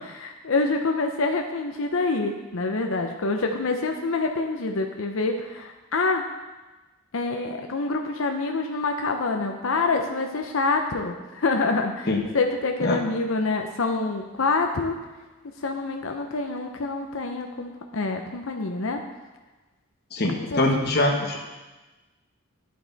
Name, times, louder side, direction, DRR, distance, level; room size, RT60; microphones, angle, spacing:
voice 1, 0.1-6.2 7.1-12.1 12.3-15.0 15.6-19.0 20.4-20.7, left 3 dB, 65° left, 4 dB, 0.7 m, -26 dB
voice 2, 20.1-21.4, left 2 dB, 45° left, 1 dB, 1.3 m, -23 dB
10.5 x 7.8 x 4.0 m, 1.2 s
head